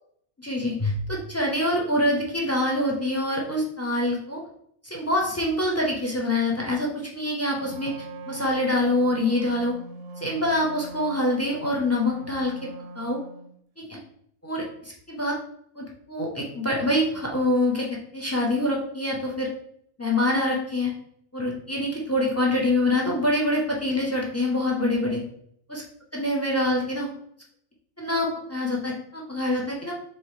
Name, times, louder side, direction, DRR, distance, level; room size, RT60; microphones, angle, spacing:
voice 1, 0.4-4.4 4.8-7.9 8.3-9.7 10.2-12.5 13.0-13.2 13.9-14.0 14.4-15.4 15.8-17.9 18.1-19.5 20.0-20.9 21.3-25.2 25.7-25.8 26.1-27.1 28.0-29.9, left 1 dB, 15° left, -2 dB, 0.5 m, -25 dB
Wind instrument woodwind instrument, 7.6-13.5, right 2 dB, 75° right, 0.9 m, -41 dB
4.2 x 3.5 x 3.2 m, 0.68 s
omnidirectional pair, 1.4 m